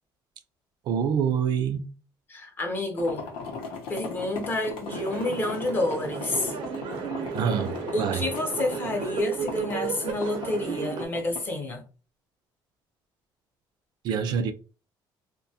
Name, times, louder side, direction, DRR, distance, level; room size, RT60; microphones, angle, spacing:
voice 1, 0.9-1.9 7.3-8.2 14.0-14.5, right 7 dB, 60° right, 0.3 m, -26 dB
voice 2, 2.3-3.3 3.9-6.5 7.9-11.8, left 2 dB, 25° left, 0.6 m, -29 dB
sound 1, 3.0-11.5, left 4 dB, 85° left, 0.7 m, -39 dB
sound 2, 4.9-11.0, right 5 dB, 85° right, 0.7 m, -33 dB
2.7 x 2.1 x 2.7 m
cardioid pair, 165°, 9 cm